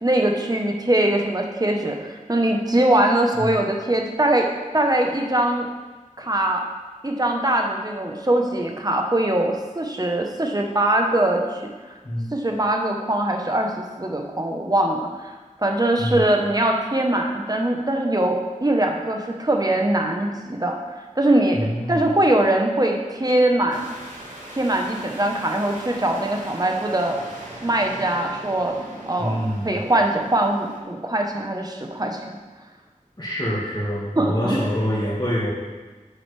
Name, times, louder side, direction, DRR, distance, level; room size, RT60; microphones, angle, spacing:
voice 1, 0.0-4.5 4.7-5.7 6.2-6.6 7.0-11.4 12.3-15.1 15.6-20.8 21.2-21.6 21.9-23.9 24.6-27.1 27.6-28.7 29.1-29.4 29.6-32.2 34.2-34.6, right 1 dB, 30° right, 2 dB, 1.1 m, -22 dB
voice 2, 21.5-22.1 29.2-29.8 33.2-35.5, equal, 30° left, -10 dB, 2.1 m, -26 dB
sound 1, 23.7-30.8, right 1 dB, 70° right, 1.8 m, -40 dB
8.9 x 7.8 x 3.4 m, 1.3 s
wide cardioid pair, 60°, 14 cm